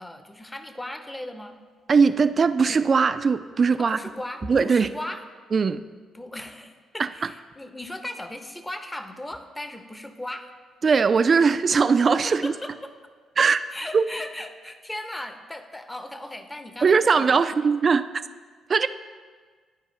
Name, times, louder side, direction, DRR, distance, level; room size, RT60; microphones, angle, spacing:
voice 1, 0.0-1.6 3.8-5.2 6.1-10.5 12.2-12.9 13.7-17.4, left 1 dB, 15° left, 8 dB, 0.7 m, -37 dB
voice 2, 1.9-4.0 4.5-4.9 5.5-5.8 10.8-12.5 13.4-13.6 13.9-14.1 16.8-18.1 18.7-18.9, right 5 dB, 45° right, 13 dB, 0.3 m, -20 dB
11.0 x 4.7 x 3.2 m, 1.5 s
hypercardioid pair, 45°, 0 cm